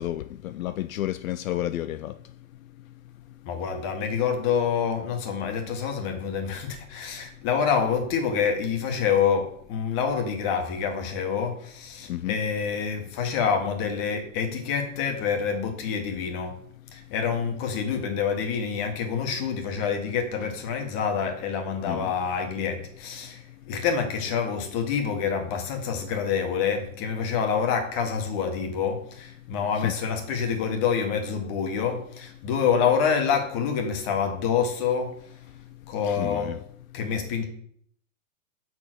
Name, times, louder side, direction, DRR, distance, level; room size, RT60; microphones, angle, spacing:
voice 1, 0.0-2.1 12.1-12.4 21.9-22.1 29.8-29.9 36.0-36.6, left 13 dB, 85° left, 0.5 m, -31 dB
voice 2, 3.5-16.5 16.9-23.4 23.7-35.1 35.9-36.5 36.9-37.4, left 6 dB, 40° left, 1.7 m, -27 dB
5.6 x 4.6 x 6.2 m
hypercardioid pair, 130°, 40 cm